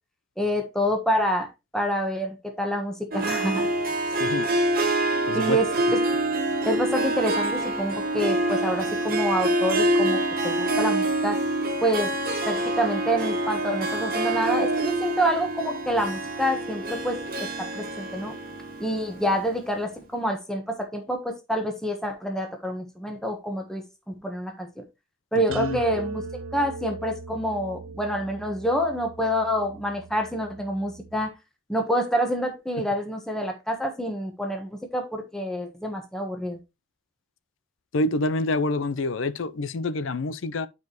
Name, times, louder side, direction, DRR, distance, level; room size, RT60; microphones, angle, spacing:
voice 1, 0.4-1.5 1.7-3.7 5.3-5.7 5.9-6.0 6.6-11.4 11.8-12.1 12.4-18.3 18.8-23.8 24.2-24.8 25.3-26.2 26.5-31.3 31.7-36.6, equal, 5° left, 1.2 m, -27 dB
Harp, 3.1-19.6, right 1 dB, 50° right, 1.7 m, -26 dB
voice 2, 4.2-4.5 5.3-5.6 25.5-25.8 32.8-32.9 37.9-40.7, left 2 dB, 75° left, 0.6 m, -27 dB
sound 1, 25.5-31.3, right 4 dB, 90° right, 0.8 m, -39 dB
9.4 x 4.9 x 3.0 m
head